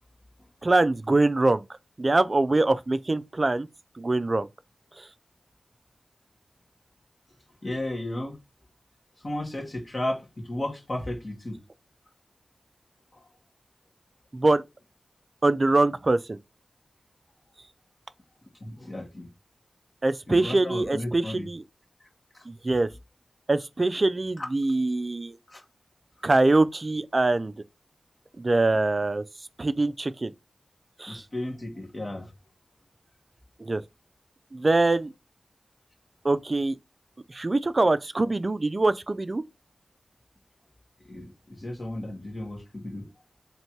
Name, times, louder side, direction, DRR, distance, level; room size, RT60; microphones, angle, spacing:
voice 1, 0.6-1.6 2.0-3.7 4.0-4.5 5.0-5.1 14.3-14.6 15.4-16.4 20.0-21.6 22.5-22.9 23.5-25.4 26.2-27.5 28.4-29.2 29.6-30.3 31.0-31.2 33.6-33.8 34.5-35.1 36.2-36.8 37.3-39.4, right 2 dB, 45° right, 0.4 m, -23 dB
voice 2, 7.6-8.4 9.2-11.6 13.1-13.2 18.6-19.3 20.3-21.5 22.3-22.4 24.4-24.5 25.5-25.6 31.1-32.3 41.0-43.1, left 1 dB, 45° left, 1.5 m, -34 dB
3.1 x 2.9 x 4.6 m
cardioid pair, 45°, 0 cm